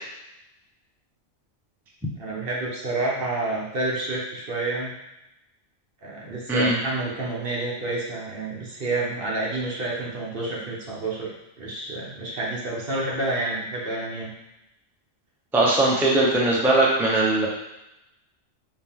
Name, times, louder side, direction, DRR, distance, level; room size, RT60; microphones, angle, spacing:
voice 1, 2.2-4.9 6.0-14.3, right 2 dB, 50° right, -4 dB, 1.2 m, -29 dB
voice 2, 15.5-17.5, right 2 dB, ahead, -4 dB, 0.6 m, -20 dB
4.8 x 2.9 x 3.5 m, 0.90 s
omnidirectional pair, 1.2 m